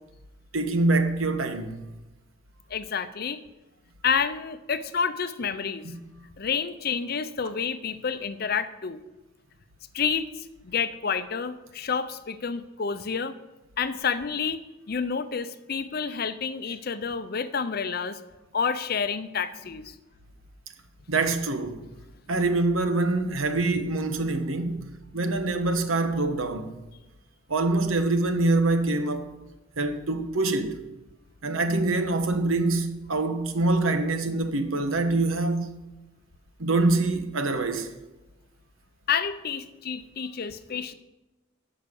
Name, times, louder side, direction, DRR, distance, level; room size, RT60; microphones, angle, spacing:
voice 1, 0.5-1.7 5.8-6.0 21.1-21.8 22.3-24.8 25.1-26.7 27.5-29.3 29.8-30.8 31.4-35.7 36.6-37.9, right 2 dB, 90° right, 1.2 m, -25 dB
voice 2, 2.7-3.4 4.0-5.9 6.4-9.0 9.9-13.4 13.8-14.6 14.9-18.2 18.5-19.9 39.1-40.9, left 6 dB, 50° left, 0.6 m, -29 dB
11.5 x 5.7 x 7.0 m
head